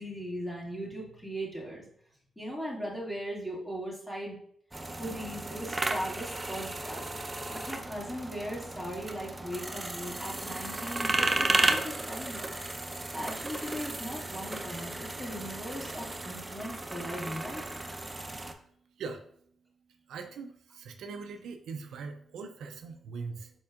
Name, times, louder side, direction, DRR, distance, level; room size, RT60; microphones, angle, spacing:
voice 1, 0.0-1.8 2.4-4.4 5.0-7.1 7.5-12.5 13.1-17.6, equal, 10° left, -5 dB, 1.9 m, -38 dB
sound 1, 4.7-18.5, right 2 dB, 25° right, 0.5 m, -34 dB
voice 2, 20.1-23.5, right 4 dB, 80° right, 6 dB, 0.4 m, -41 dB
4.5 x 4.3 x 2.4 m, 0.64 s
cardioid pair, 60°, 0 cm